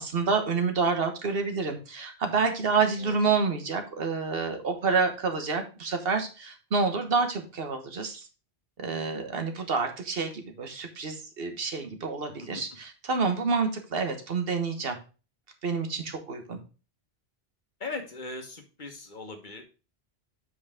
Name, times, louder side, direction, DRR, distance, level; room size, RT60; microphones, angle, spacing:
voice 1, 0.0-8.3 8.8-15.0 15.6-16.6, right 4 dB, 65° right, 6 dB, 1.4 m, -28 dB
voice 2, 17.8-19.6, left 3 dB, 50° left, 5 dB, 1.3 m, -39 dB
7.9 x 4.7 x 3.6 m, 0.34 s
omnidirectional pair, 1.1 m